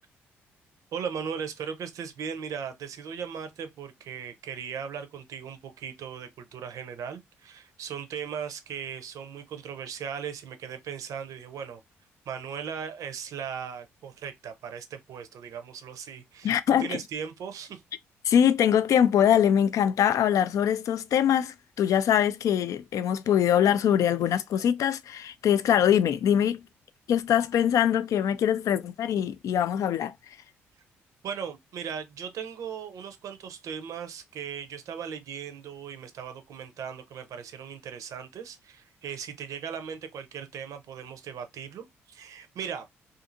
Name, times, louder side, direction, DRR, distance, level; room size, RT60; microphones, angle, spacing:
voice 1, 0.9-11.8 12.3-17.8 31.2-42.9, right 7 dB, 60° right, 0.6 m, -38 dB
voice 2, 16.4-17.0 18.3-26.6 27.1-30.1, left 9 dB, 60° left, 0.3 m, -23 dB
2.6 x 2.5 x 2.5 m
hypercardioid pair, 50°, 6 cm